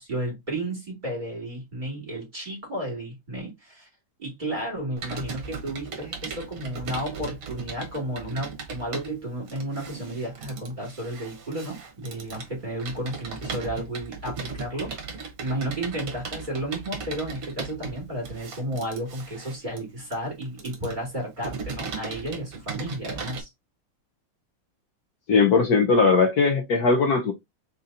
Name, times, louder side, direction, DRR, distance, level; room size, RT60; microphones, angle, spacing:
voice 1, 0.0-3.9 4.2-15.1 15.4-23.5, right 1 dB, 25° right, 2.6 m, -33 dB
Computer keyboard, 5.0-23.4, right 5 dB, 50° right, 1.4 m, -37 dB
voice 2, 25.3-27.3, left 4 dB, 65° left, 1.2 m, -19 dB
4.1 x 3.8 x 2.7 m
omnidirectional pair, 2.0 m